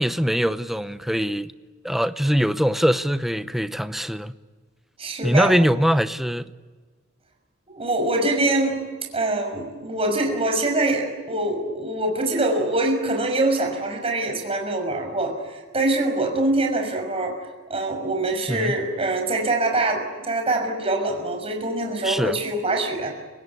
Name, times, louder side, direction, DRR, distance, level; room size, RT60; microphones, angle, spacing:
voice 1, 0.0-1.5 1.8-4.3 5.2-6.5 18.5-18.7 22.0-22.3, equal, ahead, 0.8 m, -22 dB
voice 2, 5.0-5.6 7.7-8.8 9.1-17.3 17.7-23.1, right 2 dB, 30° right, 6.0 m, -24 dB
29.5 x 18.0 x 9.7 m
head